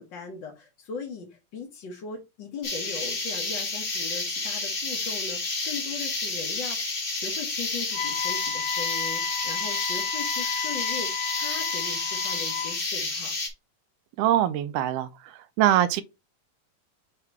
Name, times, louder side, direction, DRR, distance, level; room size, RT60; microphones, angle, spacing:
voice 1, 0.0-13.3, left 5 dB, 65° left, 1.1 m, -39 dB
sound 1, 2.6-13.5, left 3 dB, 35° left, 0.9 m, -30 dB
Wind instrument woodwind instrument, 7.9-12.8, left 7 dB, 85° left, 2.5 m, -32 dB
voice 2, 14.2-15.1 15.6-16.0, right 12 dB, 85° right, 2.1 m, -22 dB
7.5 x 2.9 x 4.6 m
omnidirectional pair, 3.6 m